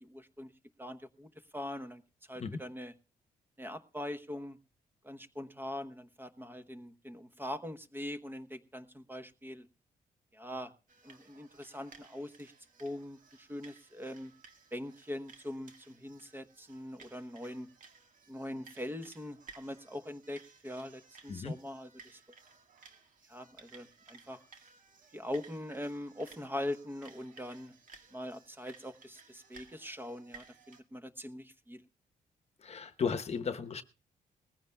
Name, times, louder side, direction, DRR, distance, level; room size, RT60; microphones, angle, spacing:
voice 1, 0.0-0.5 0.8-1.3 1.5-2.0 2.3-2.9 3.6-4.6 5.0-9.7 10.3-10.7 11.0-12.5 12.8-14.3 14.7-17.7 18.3-22.2 23.3-24.4 25.1-27.8 28.1-31.8, left 1 dB, 15° right, 1.0 m, -42 dB
sound 1, 10.9-30.8, right 5 dB, 60° right, 1.7 m, -58 dB
voice 2, 32.6-33.8, left 5 dB, 45° left, 1.0 m, -35 dB
20.0 x 15.0 x 2.3 m
cardioid pair, 105°, 15 cm